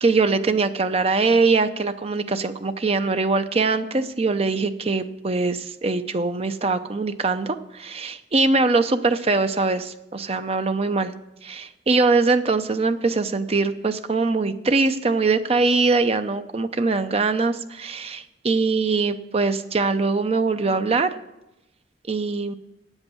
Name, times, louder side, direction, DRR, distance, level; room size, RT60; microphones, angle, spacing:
voice 1, 0.0-11.1 11.4-21.1 22.1-22.5, right 3 dB, 35° right, 9 dB, 0.6 m, -22 dB
8.9 x 8.1 x 7.0 m, 0.92 s
head